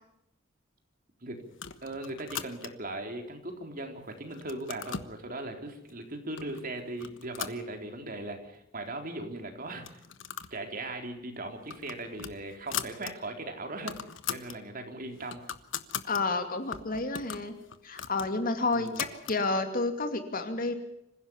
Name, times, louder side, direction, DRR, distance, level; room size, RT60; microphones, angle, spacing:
sound 1, 1.5-2.9 3.5-4.0 4.3-5.1 5.9-6.0 6.4-6.6 7.0-8.2 8.5-8.6 8.9-9.0 9.7-10.6 10.9-11.1 11.5-13.1 13.5-13.6 13.7-14.6 15.0-16.2 16.7-19.4, left 8 dB, 85° left, 1.3 m, -39 dB
voice 1, 1.8-10.0 10.5-15.4 18.7-19.0, right 2 dB, 50° right, 4 dB, 3.9 m, -39 dB
voice 2, 16.0-17.6 17.8-20.7, left 3 dB, 50° left, 7 dB, 2.7 m, -30 dB
26.0 x 16.0 x 7.2 m, 0.81 s
head